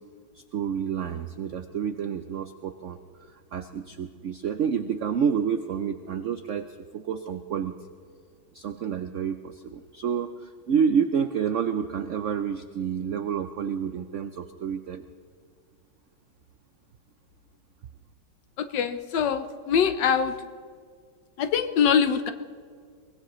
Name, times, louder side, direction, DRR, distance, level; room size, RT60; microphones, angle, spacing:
voice 1, 0.3-3.0 3.3-7.7 8.5-15.1, right 7 dB, 75° right, 9 dB, 0.7 m, -29 dB
voice 2, 18.6-20.3 21.4-22.3, left 7 dB, 75° left, 9 dB, 1.4 m, -23 dB
23.5 x 19.0 x 3.1 m, 2.1 s
omnidirectional pair, 2.0 m